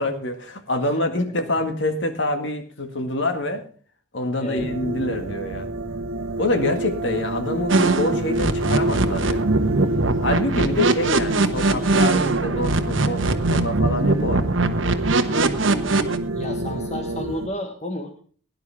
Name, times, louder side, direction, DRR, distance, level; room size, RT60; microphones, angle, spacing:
voice 1, 0.0-3.6 4.1-5.7 6.4-9.5 10.2-14.5, left 1 dB, 60° left, 7 dB, 1.9 m, -26 dB
voice 2, 4.4-4.7 16.3-18.2, left 1 dB, 35° left, 5 dB, 1.5 m, -32 dB
sound 1, 4.6-17.5, right 1 dB, 85° right, 1.1 m, -28 dB
sound 2, 7.7-16.2, right 3 dB, 70° right, 1.2 m, -21 dB
17.0 x 10.5 x 3.5 m, 0.42 s
head